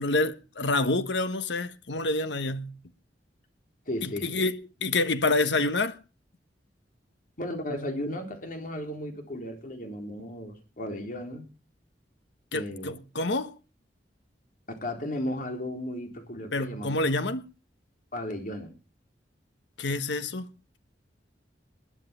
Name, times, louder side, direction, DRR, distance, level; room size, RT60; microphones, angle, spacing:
voice 1, 0.0-2.7 4.0-6.0 12.5-13.5 16.5-17.4 19.8-20.5, left 2 dB, 80° left, 1.2 m, -27 dB
voice 2, 3.9-4.3 7.4-11.5 12.5-12.9 14.7-16.9 18.1-18.7, left 1 dB, 50° left, 3.8 m, -35 dB
20.5 x 7.5 x 7.4 m
head